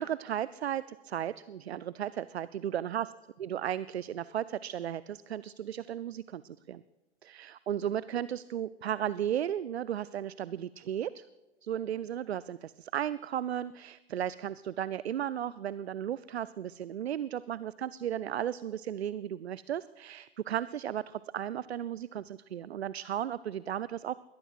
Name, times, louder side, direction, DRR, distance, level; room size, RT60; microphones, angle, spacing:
voice 1, 0.0-3.1 3.4-6.8 7.2-11.2 11.6-24.1, right 10 dB, 75° right, 18 dB, 0.5 m, -35 dB
22.0 x 18.5 x 2.5 m, 1.1 s
figure-of-eight pair, 100°, 32 cm